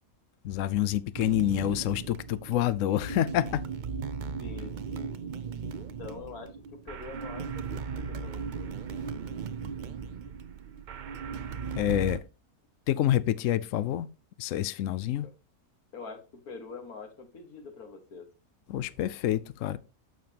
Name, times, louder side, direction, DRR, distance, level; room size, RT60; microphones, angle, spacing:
voice 1, 0.4-3.6 11.8-12.2 12.9-14.1 14.4-15.3 18.7-19.8, left 12 dB, 70° left, 0.9 m, -27 dB
sound 1, 1.1-12.2, right 6 dB, 55° right, 0.5 m, -37 dB
voice 2, 4.4-5.3 5.7-8.7 15.2-15.3 15.9-18.3, left 4 dB, 85° left, 2.0 m, -45 dB
9.2 x 6.9 x 2.9 m
omnidirectional pair, 1.5 m